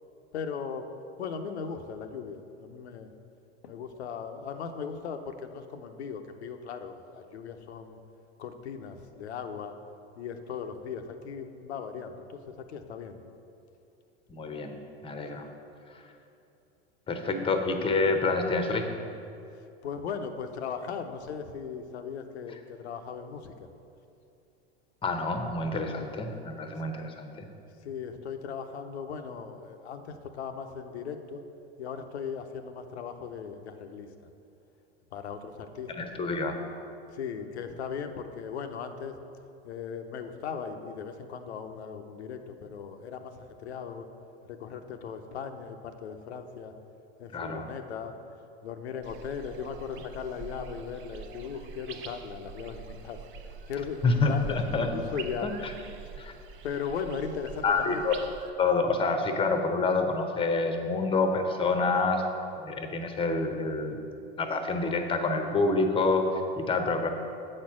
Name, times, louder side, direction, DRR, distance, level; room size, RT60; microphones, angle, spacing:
voice 1, 0.3-0.9 1.2-3.1 3.6-8.0 8.4-9.7 10.2-13.2 17.3-17.5 19.8-23.7 27.8-31.4 31.8-34.1 35.1-36.1 37.1-39.2 39.6-44.1 44.5-46.7 47.2-48.2 48.6-53.2 53.7-54.6 54.9-55.5 56.6-58.0, left 6 dB, 90° left, 7 dB, 0.7 m, -38 dB
voice 2, 14.3-14.7 15.0-15.5 15.9-16.0 17.1-18.9 25.0-27.5 36.0-36.6 47.3-47.7 54.0-54.9 55.4-55.7 56.2-56.3 57.6-58.1 58.6-62.2 62.6-64.0 64.4-67.1, left 3 dB, 15° left, 5 dB, 0.8 m, -27 dB
sound 1, 49.0-58.5, right 5 dB, 40° right, 0.6 m, -44 dB
7.9 x 4.3 x 6.1 m, 2.6 s
hypercardioid pair, 105°, 32 cm